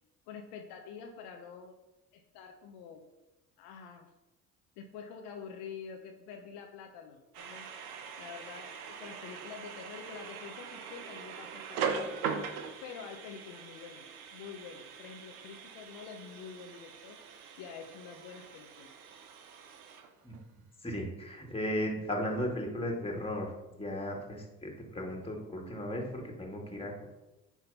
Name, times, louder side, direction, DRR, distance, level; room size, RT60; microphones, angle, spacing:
voice 1, 0.3-1.8 2.1-3.0 3.6-4.1 4.8-7.7 8.2-12.5 12.8-18.9, left 6 dB, 70° left, 3 dB, 1.0 m, -47 dB
sound 1, 7.3-20.5, right 6 dB, 80° right, 0.9 m, -41 dB
voice 2, 20.8-23.5 23.8-27.0, equal, 15° left, 0 dB, 2.2 m, -36 dB
9.2 x 3.6 x 5.6 m, 1.0 s
hypercardioid pair, 55°, 44 cm